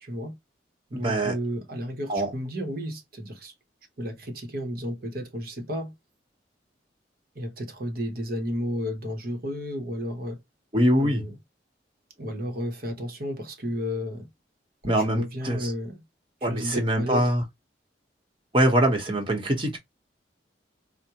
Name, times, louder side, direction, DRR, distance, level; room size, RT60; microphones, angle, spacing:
voice 1, 0.0-0.4 0.9-3.5 4.0-5.9 7.4-10.4 11.0-11.3 12.2-14.3 14.9-16.0 16.4-17.3, equal, 55° right, 0.9 m, -32 dB
voice 2, 0.9-1.3 2.1-2.3 10.7-11.2 14.8-15.7 16.4-17.4 18.5-19.8, right 1 dB, 30° right, 1.1 m, -23 dB
4.7 x 2.2 x 2.8 m
head